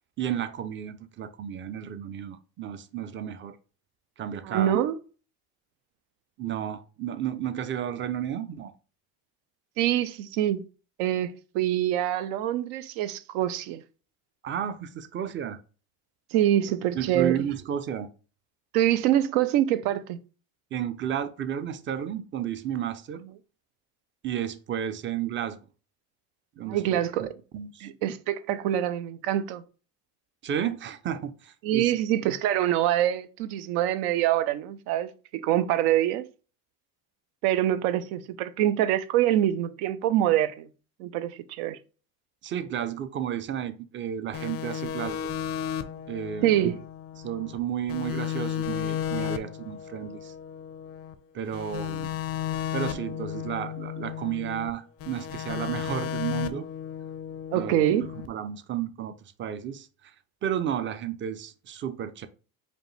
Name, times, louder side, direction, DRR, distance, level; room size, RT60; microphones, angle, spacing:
voice 1, 0.2-3.6 4.2-4.8 6.4-8.7 14.4-15.6 16.9-18.1 20.7-23.2 24.2-25.6 26.6-27.3 27.5-27.9 30.4-32.0 42.4-45.2 46.1-46.7 47.2-50.3 51.3-52.1 52.7-56.7 57.6-60.1 60.4-62.3, right 9 dB, 30° right, 0.4 m, -32 dB
voice 2, 4.5-5.0 9.8-10.6 11.0-13.8 16.3-17.4 18.7-20.2 26.7-27.3 27.8-29.6 31.6-36.2 37.4-40.7 41.0-41.8 46.4-46.8 57.5-58.1, right 12 dB, 80° right, 0.6 m, -25 dB
sound 1, 44.3-47.6 47.9-51.1 51.5-54.7 55.0-58.3, left 10 dB, 35° left, 0.4 m, -34 dB
5.1 x 2.2 x 3.1 m
supercardioid pair, 105°, 43 cm